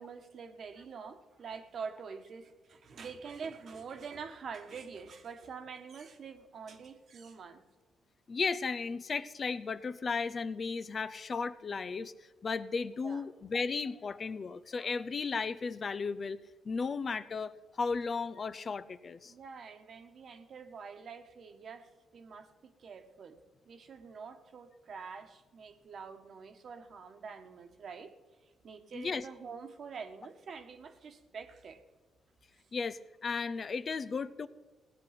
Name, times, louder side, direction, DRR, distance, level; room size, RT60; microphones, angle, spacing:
voice 1, 0.0-7.6 13.0-13.2 19.2-23.4 23.7-28.1 28.6-31.8, right 5 dB, 55° right, 8 dB, 1.3 m, -46 dB
voice 2, 8.3-12.1 12.4-16.4 16.6-19.3 28.9-29.2 32.7-34.5, left 4 dB, 40° left, 14 dB, 0.5 m, -35 dB
17.0 x 9.7 x 5.9 m, 1.2 s
cardioid pair, 90°, 0 cm